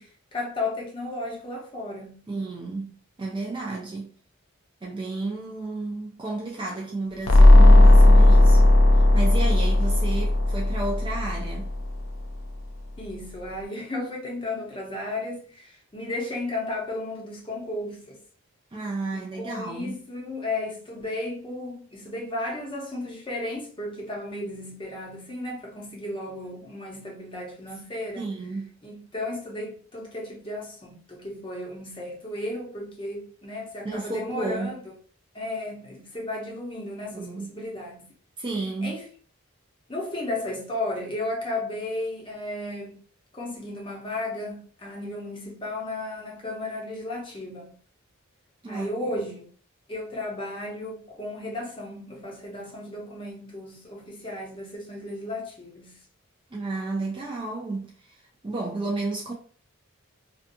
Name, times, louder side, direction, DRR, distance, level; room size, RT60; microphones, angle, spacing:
voice 1, 0.0-2.2 13.0-18.2 19.1-28.3 28.8-34.9 35.3-38.1 38.8-39.1 39.9-43.0 43.3-47.7 48.7-49.5 49.9-56.0, left 2 dB, 25° left, 0.7 m, -34 dB
voice 2, 2.3-2.9 3.2-4.1 4.8-11.7 18.7-20.0 28.2-28.7 33.8-34.7 37.1-37.5 38.4-39.0 48.6-49.2 56.5-59.3, right 3 dB, 20° right, 0.3 m, -32 dB
sound 1, 7.3-11.9, left 1 dB, 65° left, 0.5 m, -15 dB
2.6 x 2.4 x 2.5 m
head